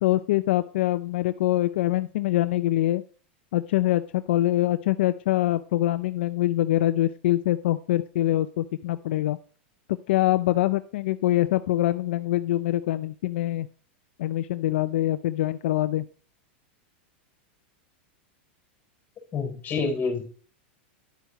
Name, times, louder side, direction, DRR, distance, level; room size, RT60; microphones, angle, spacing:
voice 1, 0.0-3.0 3.5-9.4 9.9-13.7 14.2-16.1, left 15 dB, 75° left, 11 dB, 0.5 m, -24 dB
voice 2, 19.3-20.2, left 4 dB, 25° left, 4 dB, 3.7 m, -27 dB
10.5 x 8.1 x 3.0 m, 0.41 s
supercardioid pair, 135°, 6 cm